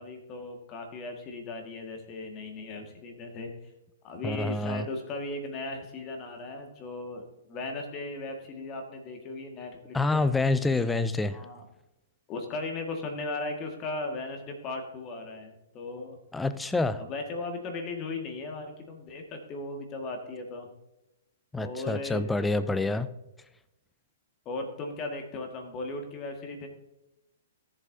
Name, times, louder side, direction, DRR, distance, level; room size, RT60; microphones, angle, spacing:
voice 1, 0.0-3.7 4.0-10.3 11.3-11.6 12.3-16.2 17.0-20.7 21.5-22.3 24.5-26.7, left 2 dB, 30° left, 1.8 m, -37 dB
voice 2, 4.2-4.9 9.9-11.5 16.3-17.0 21.5-23.1, left 2 dB, 5° left, 0.5 m, -27 dB
17.5 x 7.4 x 2.7 m
figure-of-eight pair, 115°, 0 cm